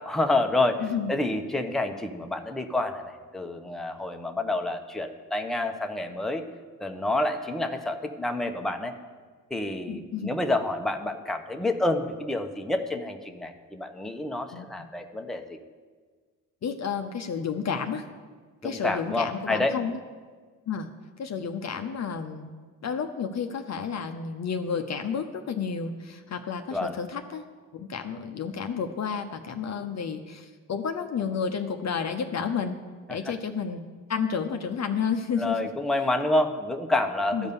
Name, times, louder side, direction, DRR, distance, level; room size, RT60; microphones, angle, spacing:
voice 1, 0.0-6.4 6.8-8.9 9.5-15.6 18.6-19.7 26.7-26.9 33.1-33.2 35.4-37.5, left 2 dB, ahead, 4 dB, 1.0 m, -28 dB
voice 2, 0.8-1.1 9.7-10.3 14.5-14.7 16.6-18.1 18.6-20.0 20.7-20.9 21.2-22.5 22.8-27.4 27.7-32.8 33.1-33.8 34.1-35.7 37.3-37.5, left 6 dB, 40° left, 6 dB, 0.8 m, -31 dB
13.0 x 5.3 x 6.9 m, 1.5 s
hypercardioid pair, 50°, 43 cm